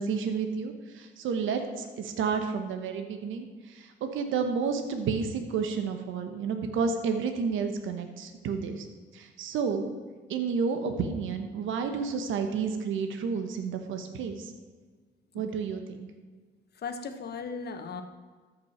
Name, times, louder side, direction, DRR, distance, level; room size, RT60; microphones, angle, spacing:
voice 1, 0.0-8.9 9.1-10.0 10.3-14.5 15.3-16.1, right 5 dB, 80° right, 6 dB, 1.1 m, -31 dB
voice 2, 16.8-18.0, left 5 dB, 55° left, 7 dB, 1.2 m, -37 dB
13.5 x 6.1 x 4.3 m, 1.4 s
cardioid pair, 90°, 20 cm